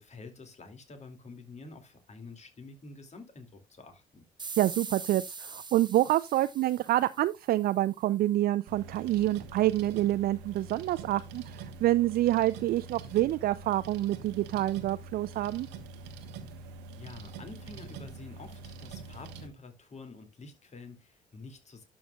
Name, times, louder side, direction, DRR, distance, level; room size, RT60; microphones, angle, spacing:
voice 1, 0.0-4.3 16.6-16.7 17.0-21.8, left 3 dB, 40° left, 2.6 m, -48 dB
sound 1, 4.4-7.7, right 4 dB, 25° right, 1.1 m, -43 dB
voice 2, 4.6-15.7, right 15 dB, 55° right, 0.4 m, -27 dB
sound 2, 8.7-19.5, right 4 dB, 75° right, 1.2 m, -45 dB
12.0 x 6.2 x 2.4 m
hypercardioid pair, 50°, 18 cm